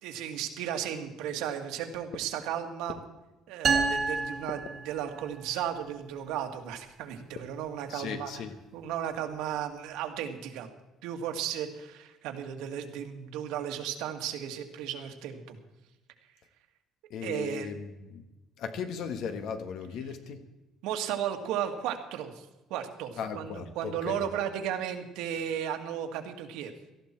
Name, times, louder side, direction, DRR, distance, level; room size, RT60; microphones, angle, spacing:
voice 1, 0.0-3.0 3.5-8.3 8.7-10.7 11.0-15.6 17.2-17.7 20.8-26.7, right 9 dB, 85° right, 5 dB, 1.9 m, -35 dB
sound 1, 3.6-5.4, right 5 dB, 30° right, 1.7 m, -29 dB
voice 2, 7.9-8.5 17.1-18.3 18.6-20.4 23.2-24.3, left 6 dB, 55° left, 8 dB, 1.3 m, -37 dB
18.0 x 13.5 x 4.5 m, 1.0 s
cardioid pair, 180°, 0 cm